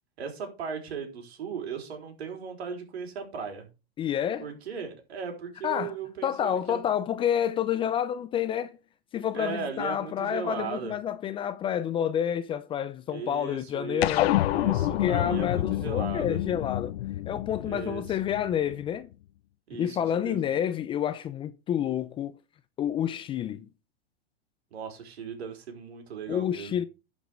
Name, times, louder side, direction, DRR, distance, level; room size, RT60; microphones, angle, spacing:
voice 1, 0.2-3.7 4.4-6.8 9.3-10.9 13.1-16.4 17.7-18.2 19.7-20.4 24.7-26.7, right 6 dB, 85° right, 3.9 m, -37 dB
voice 2, 4.0-4.5 5.6-5.9 6.2-8.8 9.1-14.3 14.8-16.9 17.3-19.1 19.7-22.4 22.8-23.7 26.3-26.8, left 9 dB, 15° left, 0.4 m, -29 dB
sound 1, 14.0-18.7, left 15 dB, 75° left, 0.6 m, -28 dB
11.0 x 5.3 x 5.1 m
supercardioid pair, 135°, 31 cm